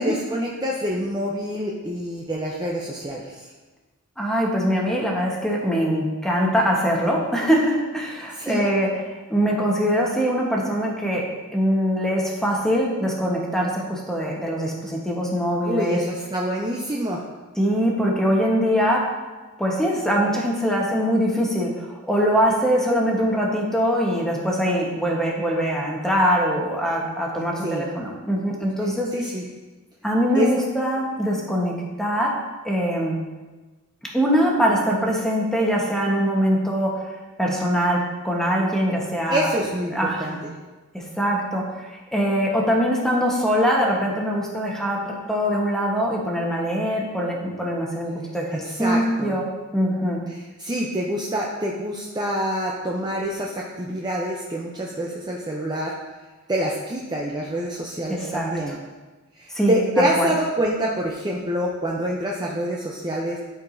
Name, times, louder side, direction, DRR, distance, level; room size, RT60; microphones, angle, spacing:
voice 1, 0.0-3.5 8.3-8.7 15.6-17.2 27.6-27.9 29.1-29.5 30.3-30.5 39.3-40.4 48.5-49.4 50.3-55.9 56.5-58.8 59.4-63.4, equal, 20° right, -3 dB, 0.6 m, -26 dB
voice 2, 4.2-8.9 9.3-11.2 11.5-16.0 17.6-19.0 19.6-29.1 30.0-32.3 32.6-33.2 34.1-36.9 37.4-39.7 39.9-40.4 40.9-41.6 41.9-49.5 49.7-50.2 58.1-58.5 59.5-60.3, equal, ahead, -2 dB, 1.1 m, -22 dB
11.5 x 4.6 x 2.7 m, 1.2 s
head